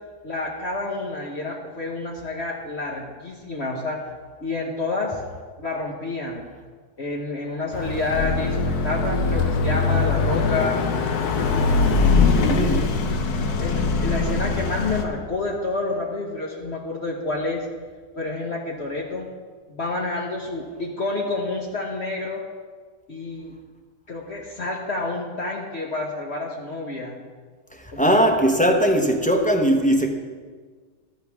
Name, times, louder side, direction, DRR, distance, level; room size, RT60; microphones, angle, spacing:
voice 1, 0.2-4.0 4.4-5.1 5.6-6.5 7.0-10.8 11.5-11.8 12.2-12.6 13.6-17.6 18.1-19.3 19.7-22.4 23.1-23.5 24.1-27.2 27.9-28.2, left 2 dB, 45° left, -2 dB, 1.4 m, -29 dB
Car passing by / Accelerating revving vroom, 7.7-15.0, left 4 dB, 70° left, 1.4 m, -22 dB
voice 2, 12.2-12.9 27.7-30.1, equal, 5° left, 3 dB, 0.7 m, -20 dB
14.0 x 12.5 x 3.6 m, 1.5 s
omnidirectional pair, 1.7 m